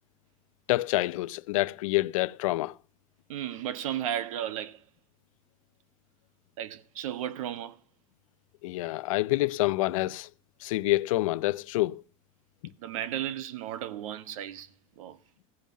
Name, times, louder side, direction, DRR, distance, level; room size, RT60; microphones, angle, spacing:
voice 1, 0.7-2.7 8.6-10.3 10.6-12.0, left 18 dB, 85° left, 0.5 m, -27 dB
voice 2, 3.3-4.8 6.6-7.8 12.8-14.7 15.0-15.2, right 11 dB, 85° right, 0.9 m, -34 dB
15.0 x 5.4 x 7.4 m
supercardioid pair, 180°, 17 cm